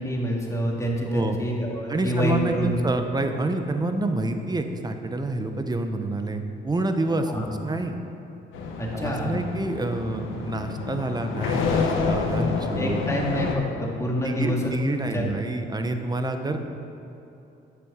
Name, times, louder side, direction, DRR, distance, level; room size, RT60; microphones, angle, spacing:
voice 1, 0.0-2.7 7.3-7.5 8.8-9.4 12.8-14.7 15.1-15.2, equal, 15° left, -2 dB, 2.3 m, -27 dB
voice 2, 1.9-8.0 8.9-13.0 14.2-16.6, right 2 dB, 20° right, 6 dB, 1.0 m, -28 dB
sound 1, 8.5-13.5, left 4 dB, 90° left, 1.2 m, -28 dB
10.5 x 7.0 x 7.4 m, 2.9 s
cardioid pair, 90°, 20 cm